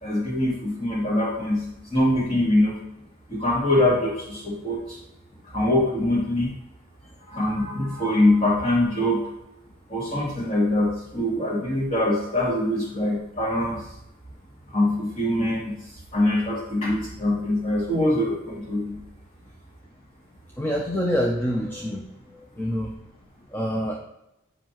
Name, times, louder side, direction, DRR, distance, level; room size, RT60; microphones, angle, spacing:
voice 1, 0.0-1.6 1.9-2.7 3.3-4.8 5.5-6.5 7.3-9.2 9.9-13.8 14.7-15.7 16.1-19.0, left 1 dB, 30° left, -5 dB, 2.3 m, -23 dB
voice 2, 20.6-22.0 22.6-22.9 23.5-24.0, equal, 10° left, 0 dB, 0.5 m, -25 dB
7.5 x 5.1 x 3.0 m, 0.84 s
head